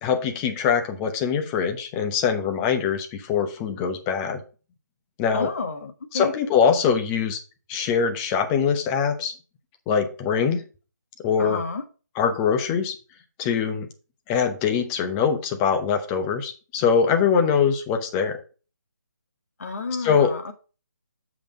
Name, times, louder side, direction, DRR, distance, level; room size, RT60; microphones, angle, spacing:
voice 1, 0.0-4.4 5.2-5.5 6.1-7.4 7.7-9.3 9.9-10.6 11.2-11.6 12.2-12.9 13.4-13.9 14.3-18.4 20.0-20.3, left 6 dB, 15° left, 6 dB, 0.9 m, -23 dB
voice 2, 5.3-6.3 11.4-11.8 19.6-20.5, left 4 dB, 50° left, 7 dB, 1.6 m, -30 dB
7.2 x 5.2 x 4.9 m, 0.34 s
figure-of-eight pair, 150°, 10 cm